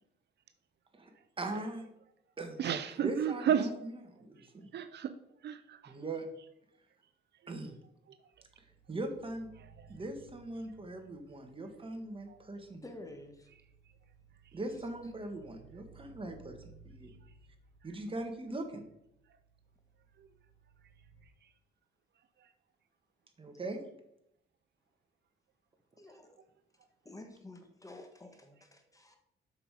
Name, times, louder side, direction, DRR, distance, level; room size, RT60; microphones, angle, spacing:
voice 1, 1.4-1.8 2.4-2.6 3.0-4.7 5.9-6.2 7.5-7.8 8.9-9.5 9.9-12.8 14.5-17.1 17.8-18.8 23.4-23.8, right 2 dB, 25° right, 5 dB, 1.7 m, -40 dB
voice 2, 2.6-3.7 4.7-5.1 5.4-5.9 9.8-9.9 12.3-12.4 20.2-20.3 22.4-22.5, right 9 dB, 60° right, 10 dB, 0.6 m, -32 dB
sound 1, 8.3-21.3, right 4 dB, 80° right, 1.6 m, -61 dB
voice 3, 12.8-13.5 26.0-26.4 27.0-29.2, left 2 dB, 15° left, 5 dB, 1.4 m, -50 dB
7.6 x 6.3 x 4.9 m, 0.80 s
cardioid pair, 90°, 20 cm